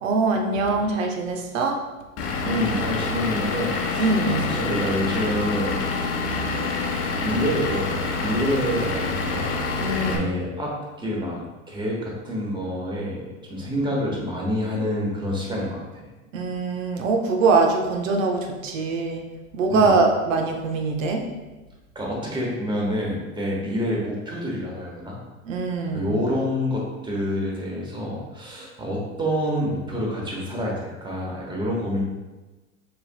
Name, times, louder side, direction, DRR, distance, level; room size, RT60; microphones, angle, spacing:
voice 1, 0.0-1.8 4.0-4.5 9.8-10.4 16.3-19.2 19.5-21.2 25.4-26.1, right 3 dB, 75° right, 3 dB, 0.9 m, -23 dB
Vehicle / Engine, 2.2-10.2, left 3 dB, 35° left, 0.9 m, -26 dB
voice 2, 2.4-5.9 7.2-9.5 10.0-16.1 19.7-19.9 21.9-25.2 25.9-32.0, equal, 10° right, -3 dB, 1.3 m, -27 dB
6.8 x 3.4 x 2.3 m, 1.2 s
hypercardioid pair, 95°, 40 cm